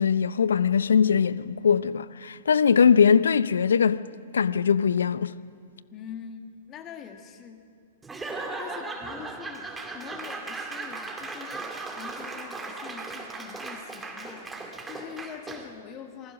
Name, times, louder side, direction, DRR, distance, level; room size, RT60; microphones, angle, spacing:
voice 1, 0.0-4.0 4.3-5.3, left 6 dB, 70° left, 0.6 m, -21 dB
voice 2, 5.9-7.6 8.3-16.3, left 8 dB, 30° left, 2.0 m, -44 dB
Laughter / Applause / Crowd, 8.0-15.8, right 3 dB, 10° right, 2.3 m, -37 dB
26.5 x 20.0 x 6.3 m
figure-of-eight pair, 110°, 0 cm